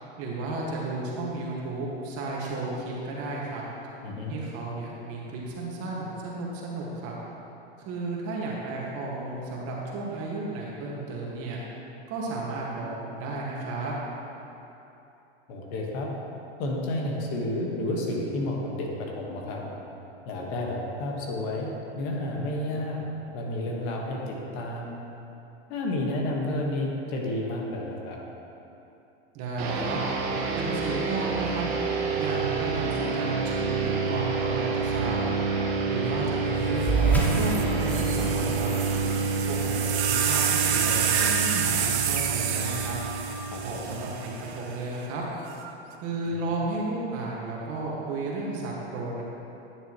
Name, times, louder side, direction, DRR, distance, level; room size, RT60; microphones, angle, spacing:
voice 1, 0.2-3.6 4.3-7.1 7.9-11.6 12.1-13.9 29.3-30.0 30.5-31.7 32.2-35.2 35.8-38.7 39.5-43.0 43.6-45.2 46.0-49.2, right 2 dB, 45° right, -4 dB, 1.9 m, -33 dB
voice 2, 4.0-4.3 15.5-16.1 16.6-19.6 20.2-23.0 23.3-25.0 25.7-28.2 43.5-44.0 46.2-46.3, left 1 dB, 55° left, -1 dB, 1.6 m, -31 dB
sound 1, 29.6-44.4, right 4 dB, 60° right, 1.3 m, -28 dB
sound 2, 36.8-41.7, right 3 dB, 5° left, 0.8 m, -30 dB
sound 3, 36.8-36.9 37.2-44.6 45.5-45.9, right 8 dB, 80° right, 0.9 m, -29 dB
10.5 x 6.7 x 3.1 m, 2.9 s
hypercardioid pair, 115°, 33 cm